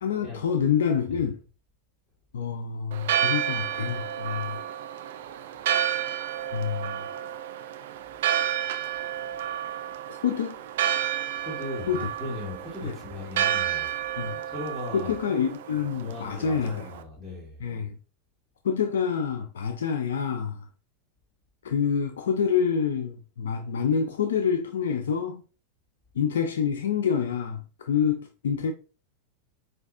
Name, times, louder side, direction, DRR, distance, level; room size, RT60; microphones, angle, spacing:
voice 1, 0.0-1.4 2.3-4.7 6.5-7.0 10.1-10.6 11.9-12.1 12.8-13.0 14.2-14.4 14.9-16.9 17.6-18.0 18.6-20.7 21.6-25.4 26.1-28.7, left 7 dB, 90° left, 0.4 m, -27 dB
Church bell, 2.9-17.0, right 10 dB, 75° right, 0.3 m, -31 dB
voice 2, 11.4-13.9 14.5-15.2 16.0-17.6, left 2 dB, 15° left, 1.5 m, -37 dB
4.5 x 2.4 x 2.4 m
hypercardioid pair, 115°, 0 cm